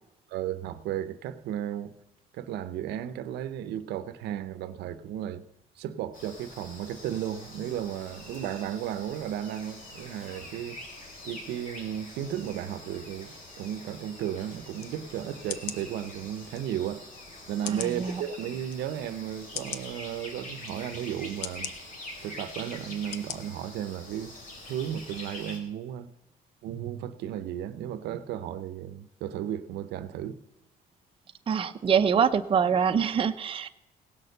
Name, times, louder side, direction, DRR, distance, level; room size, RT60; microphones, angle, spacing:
voice 1, 0.3-1.9 2.3-5.4 5.8-10.8 11.2-17.0 17.5-21.7 22.2-24.3 24.7-26.1 26.6-30.4, right 10 dB, 80° right, 0.8 m, -34 dB
sound 1, 6.1-25.6, left 1 dB, 50° left, 3.6 m, -45 dB
sound 2, 14.8-14.9 15.5-15.8 16.5-16.6 17.6-18.0 18.7-18.8 19.5-19.8 20.6-20.8 21.4-21.7 22.5-22.6 23.1-23.4 23.8-23.9, left 10 dB, 90° left, 0.8 m, -37 dB
voice 2, 17.7-18.2 31.5-33.7, right 7 dB, 30° right, 0.7 m, -25 dB
17.0 x 6.6 x 6.7 m
cardioid pair, 110°, 17 cm